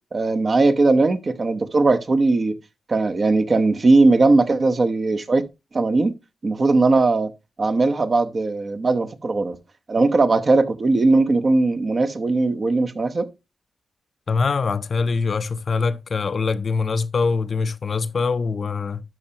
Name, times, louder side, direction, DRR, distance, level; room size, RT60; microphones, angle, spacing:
voice 1, 0.1-2.5 2.9-5.5 5.7-6.1 6.4-7.3 7.6-9.6 9.9-13.3, right 3 dB, 45° right, 0.9 m, -19 dB
voice 2, 14.3-19.0, left 4 dB, 50° left, 0.5 m, -23 dB
12.0 x 5.6 x 2.8 m
wide cardioid pair, 100°, 0 cm